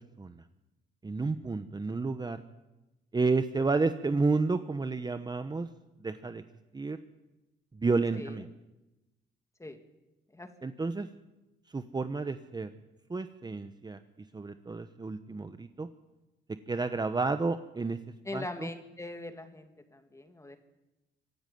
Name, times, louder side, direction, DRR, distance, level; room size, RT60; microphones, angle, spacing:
voice 1, 1.0-2.4 3.1-5.7 6.0-6.4 6.7-7.0 7.7-8.5 10.6-11.1 11.7-12.7 13.1-14.0 14.3-15.9 16.7-18.0 18.3-18.7, right 3 dB, 20° right, 10 dB, 1.0 m, -31 dB
voice 2, 8.1-8.4 9.6-9.8 10.3-10.7 18.2-20.6, left 2 dB, 15° left, 7 dB, 2.6 m, -42 dB
24.5 x 11.5 x 9.4 m, 1.0 s
cardioid pair, 90°, 20 cm